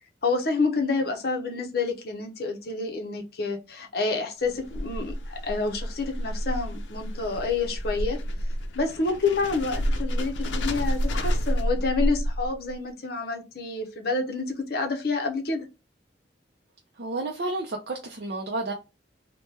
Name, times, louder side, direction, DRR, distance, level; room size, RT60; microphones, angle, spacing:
voice 1, 0.2-8.2 8.7-15.6, left 3 dB, 55° left, 0.7 m, -28 dB
sound 1, 4.4-12.7, equal, 90° left, 0.5 m, -29 dB
voice 2, 17.0-18.7, right 2 dB, 60° right, 0.5 m, -31 dB
3.0 x 2.1 x 3.2 m
head